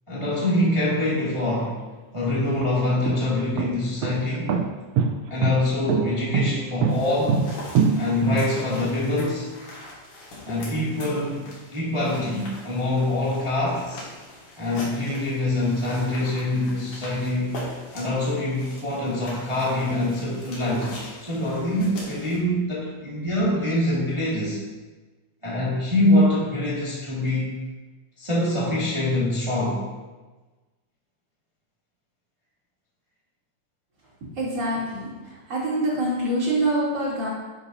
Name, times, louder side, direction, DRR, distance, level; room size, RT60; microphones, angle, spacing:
voice 1, 0.1-1.8 2.1-4.6 5.3-7.5 8.0-9.6 10.4-14.0 14.6-17.6 17.9-24.6 25.4-27.6 28.2-29.9, left 1 dB, 15° right, -7 dB, 1.4 m, -24 dB
sound 1, 1.6-1.7 2.4-8.9, right 6 dB, 80° right, 1.5 m, -24 dB
sound 2, 6.9-22.4, left 1 dB, 75° left, 3.7 m, -42 dB
voice 2, 34.4-35.1 35.5-37.3, right 1 dB, 35° right, -8 dB, 3.4 m, -25 dB
12.0 x 7.0 x 2.7 m, 1.2 s
omnidirectional pair, 3.6 m